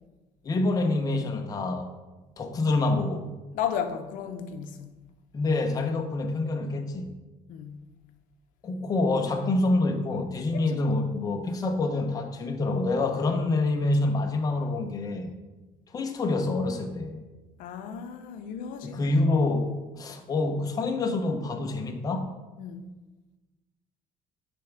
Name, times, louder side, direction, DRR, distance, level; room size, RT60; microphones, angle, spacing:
voice 1, 0.4-1.9 2.4-3.3 5.3-7.1 8.6-15.3 15.9-17.2 18.8-22.3, left 2 dB, 25° left, 0.8 m, -26 dB
voice 2, 3.5-4.9 7.5-7.8 10.5-11.0 17.6-19.1 22.6-22.9, left 8 dB, 75° left, 0.7 m, -34 dB
8.3 x 3.5 x 5.9 m
cardioid pair, 155°, 14 cm